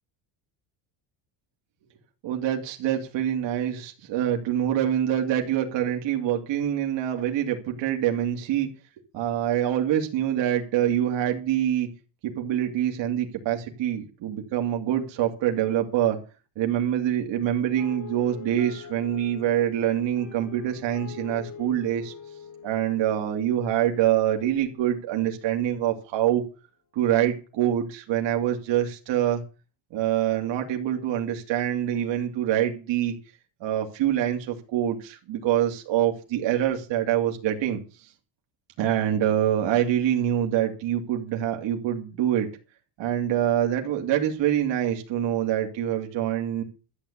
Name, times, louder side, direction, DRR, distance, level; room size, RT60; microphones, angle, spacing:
voice 1, 2.2-8.7 9.1-11.9 12.2-16.2 16.6-22.1 22.6-26.4 26.9-29.4 29.9-33.1 33.6-37.8 38.8-42.5 43.0-46.6, right 11 dB, 60° right, 2 dB, 2.6 m, -25 dB
sound 1, 17.8-25.8, left 6 dB, 55° left, 7.0 m, -44 dB
13.0 x 8.3 x 8.6 m, 0.35 s
cardioid pair, 155°, 49 cm